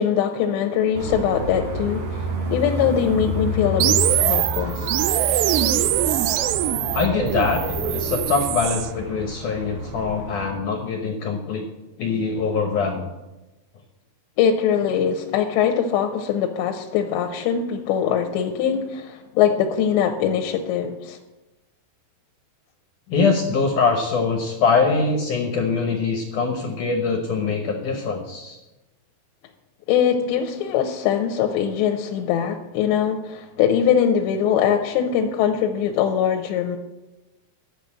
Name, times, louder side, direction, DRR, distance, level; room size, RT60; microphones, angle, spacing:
voice 1, 0.0-4.9 14.4-21.2 29.9-36.8, left 8 dB, 90° left, 4 dB, 3.0 m, -22 dB
sound 1, 0.9-10.5, left 1 dB, 70° right, 5.1 m, -30 dB
sound 2, 3.8-8.9, right 13 dB, 85° right, 2.8 m, -22 dB
voice 2, 6.9-11.7 12.0-13.1 23.1-28.6, left 4 dB, 75° left, 2 dB, 1.9 m, -23 dB
11.5 x 6.5 x 8.5 m, 1.1 s
omnidirectional pair, 5.0 m